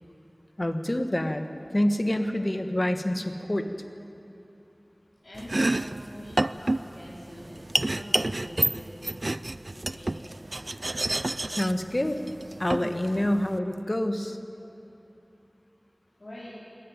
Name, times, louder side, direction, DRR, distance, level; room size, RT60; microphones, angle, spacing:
voice 1, 0.6-3.7 11.5-12.2 12.6-14.4, left 1 dB, 40° left, 7 dB, 1.4 m, -27 dB
voice 2, 5.2-9.1 9.7-10.3 16.2-16.5, left 1 dB, 70° left, -10 dB, 4.6 m, -44 dB
Domestic sounds home sounds, 5.3-13.6, right 2 dB, 60° right, 0.4 m, -30 dB
21.0 x 14.5 x 9.2 m, 2.9 s
wide cardioid pair, 45°, 0 cm